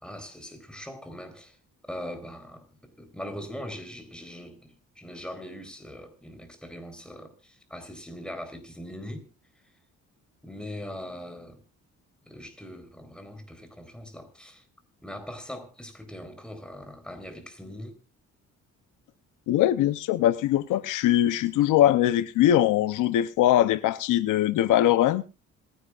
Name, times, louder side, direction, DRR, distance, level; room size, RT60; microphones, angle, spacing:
voice 1, 0.0-1.6 1.9-9.3 10.4-11.6 12.3-14.6 15.0-17.9, equal, 5° left, 4.0 m, -41 dB
voice 2, 19.5-25.2, left 12 dB, 90° left, 0.8 m, -22 dB
26.5 x 10.5 x 2.5 m
cardioid pair, 90°, 30 cm